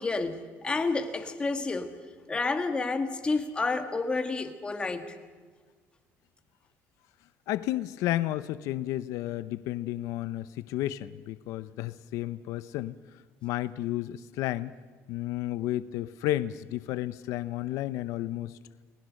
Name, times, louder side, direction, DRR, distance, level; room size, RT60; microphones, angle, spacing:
voice 1, 0.0-1.9 2.3-5.2, left 3 dB, 20° left, 7 dB, 2.0 m, -30 dB
voice 2, 7.5-13.0 13.4-14.7 15.1-18.6, left 14 dB, 80° left, 15 dB, 0.7 m, -32 dB
29.5 x 19.5 x 6.5 m, 1.5 s
cardioid pair, 135°, 5 cm